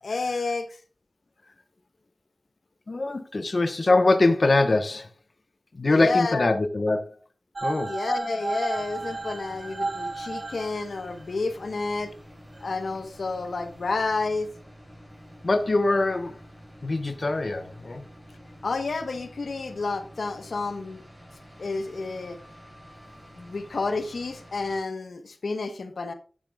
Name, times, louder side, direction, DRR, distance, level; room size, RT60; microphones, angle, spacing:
voice 1, 0.0-0.7 5.9-6.5 7.9-12.1 12.6-14.5 18.6-21.0 21.6-22.4 23.3-26.1, left 3 dB, 90° left, 1.1 m, -30 dB
voice 2, 2.9-5.1 5.7-7.2 7.6-7.9 15.4-16.4 16.8-18.0, left 2 dB, 60° left, 1.1 m, -23 dB
sound 1, 7.6-11.4 12.6-12.7, right 3 dB, 60° right, 1.6 m, -33 dB
sound 2, 8.7-24.8, equal, 5° right, 5.2 m, -48 dB
10.5 x 10.0 x 2.4 m
wide cardioid pair, 55°, 0 cm